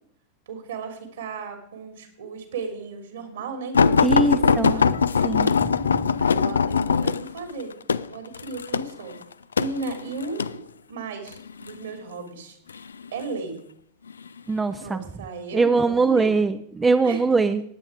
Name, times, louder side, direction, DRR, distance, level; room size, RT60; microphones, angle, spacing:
voice 1, 0.5-4.1 4.4-4.8 6.2-9.1 9.6-10.6 10.9-12.6 13.1-13.6 14.8-16.4 17.0-17.2, right 4 dB, 65° right, 5 dB, 3.2 m, -35 dB
sound 1, 3.7-10.6 11.3-11.8 12.7-13.3 14.1-14.3 14.6-14.7, left 6 dB, 70° left, 0.4 m, -21 dB
voice 2, 4.0-4.8 5.2-6.0 14.5-15.0 15.5-17.6, right 4 dB, 15° right, 10 dB, 0.6 m, -22 dB
19.0 x 8.5 x 5.0 m, 0.67 s
figure-of-eight pair, 90°, 0 cm